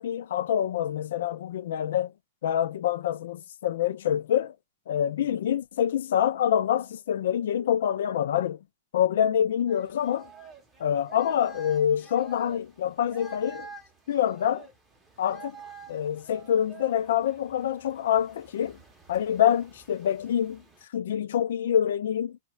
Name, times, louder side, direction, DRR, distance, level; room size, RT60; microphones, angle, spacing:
voice 1, 0.0-2.1 2.4-4.5 4.9-8.6 8.9-10.3 10.8-13.7 14.1-14.7 15.2-15.6 15.9-18.8 19.1-20.6 20.9-22.4, left 9 dB, 75° left, 0.3 m, -26 dB
sound 1, 9.7-20.8, right 4 dB, 10° right, 0.7 m, -49 dB
2.3 x 2.1 x 3.0 m
hypercardioid pair, 150°, 0 cm